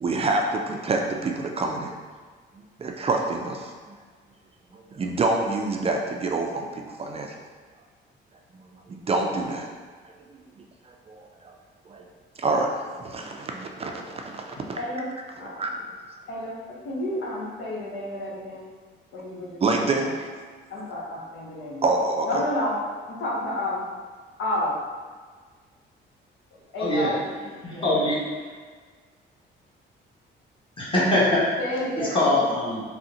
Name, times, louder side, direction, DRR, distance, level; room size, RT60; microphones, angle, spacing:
voice 1, 0.0-1.9 2.8-4.0 4.7-7.3 8.9-9.7 10.0-10.4 11.1-11.6 11.9-12.0 12.4-14.8 15.4-15.7 19.6-20.3 21.8-22.3, right 3 dB, 30° right, 2 dB, 0.3 m, -27 dB
voice 2, 14.8-15.1 15.4-15.5 16.3-18.6 19.1-20.1 20.7-22.8 23.0-23.9 24.4-24.8 26.7-27.8 31.2-31.3 31.6-32.5, left 1 dB, 80° left, -4 dB, 0.8 m, -31 dB
voice 3, 26.8-27.2 27.6-28.2 30.8-31.5 32.0-32.8, left 1 dB, 25° left, -8 dB, 1.1 m, -23 dB
3.7 x 2.1 x 2.7 m, 1.5 s
cardioid pair, 90°, 20 cm